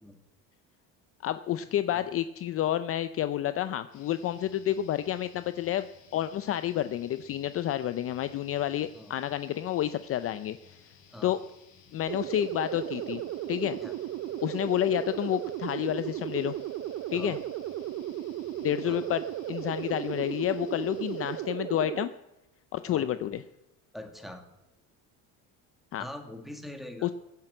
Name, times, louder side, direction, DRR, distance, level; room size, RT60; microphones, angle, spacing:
voice 1, 1.2-5.9 6.1-10.8 11.2-11.4 11.9-13.2 13.5-13.8 14.4-16.5 17.1-17.4 18.6-19.2 19.5-22.1 22.7-23.4 25.9-26.0 27.0-27.1, left 12 dB, 40° left, 13 dB, 0.5 m, -29 dB
sound 1, 3.9-21.4, left 6 dB, 80° left, 5.0 m, -58 dB
sound 2, 12.1-22.1, right 12 dB, 45° right, 0.5 m, -35 dB
voice 2, 23.9-24.4 26.0-27.1, left 1 dB, ahead, 6 dB, 1.9 m, -43 dB
16.5 x 10.5 x 7.8 m, 0.95 s
cardioid pair, 140°, 35 cm